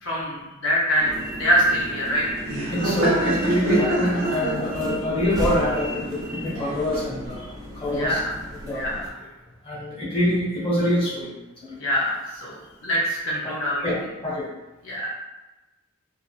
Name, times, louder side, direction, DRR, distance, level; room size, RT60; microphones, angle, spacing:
voice 1, 0.0-2.3 7.9-8.3 8.7-9.2 11.8-12.6 12.8-13.9 14.8-15.1, equal, 65° left, -5 dB, 0.6 m, -24 dB
sound 1, 1.0-9.1, equal, 20° right, 0.4 m, -36 dB
Laughter, 1.0-7.3, right 1 dB, 65° right, 0.7 m, -28 dB
voice 2, 2.7-8.2 8.6-8.8 9.6-11.3 11.6-11.9 13.8-13.9 14.2-14.5, left 1 dB, 25° left, -8 dB, 1.0 m, -25 dB
3.3 x 2.4 x 2.3 m, 1.1 s
head